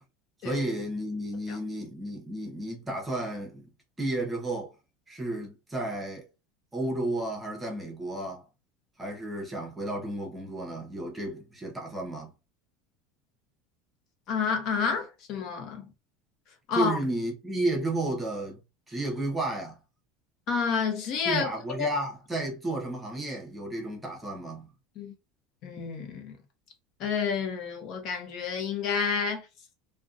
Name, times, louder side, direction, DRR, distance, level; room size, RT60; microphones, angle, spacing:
voice 1, 0.4-3.7 4.0-4.7 5.1-6.3 6.7-8.5 9.0-12.3 16.7-18.6 18.9-19.8 21.2-24.7, right 1 dB, 10° right, 0.8 m, -32 dB
voice 2, 14.3-15.9 16.7-17.0 20.5-21.9 25.0-25.1 25.6-26.4 27.0-29.5, left 6 dB, 50° left, 0.7 m, -29 dB
2.5 x 2.2 x 2.4 m
supercardioid pair, 140°, 0 cm